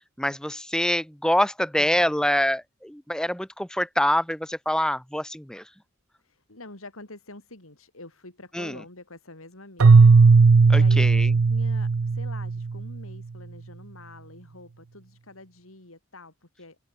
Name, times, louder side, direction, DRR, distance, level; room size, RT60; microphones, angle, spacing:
voice 1, 0.2-5.6 8.5-8.8 10.7-11.3, left 1 dB, 5° left, 1.0 m, -25 dB
voice 2, 1.8-2.1 6.2-16.8, left 2 dB, 85° left, 5.3 m, -46 dB
Keyboard (musical), 9.8-12.9, right 4 dB, 85° right, 0.6 m, -16 dB
open air
head